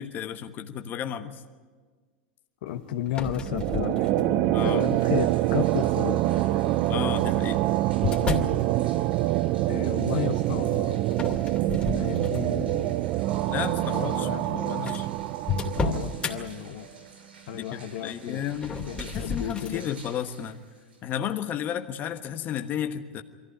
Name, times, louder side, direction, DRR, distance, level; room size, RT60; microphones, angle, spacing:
voice 1, 0.0-1.4 4.5-4.9 6.9-7.7 13.5-14.3 14.5-15.1 17.5-20.6 21.0-23.2, left 9 dB, 35° left, 7 dB, 1.3 m, -33 dB
voice 2, 2.6-6.6 9.7-11.0 11.9-13.0 13.7-15.2 15.5-16.9 17.5-18.5 18.9-19.9, left 11 dB, 65° left, 8 dB, 1.3 m, -34 dB
sound 1, 3.1-4.5 5.2-5.6 6.7-8.6 11.1-12.7 13.1-13.4 14.1-14.2 14.4-14.5 14.9-16.4 18.5-19.8, left 3 dB, 20° left, 2.6 m, -32 dB
sound 2, 3.4-16.5, right 16 dB, 50° right, 0.6 m, -26 dB
sound 3, 4.6-21.8, right 3 dB, 80° right, 7.2 m, -52 dB
23.5 x 15.0 x 9.9 m, 1.5 s
hypercardioid pair, 105°, 5 cm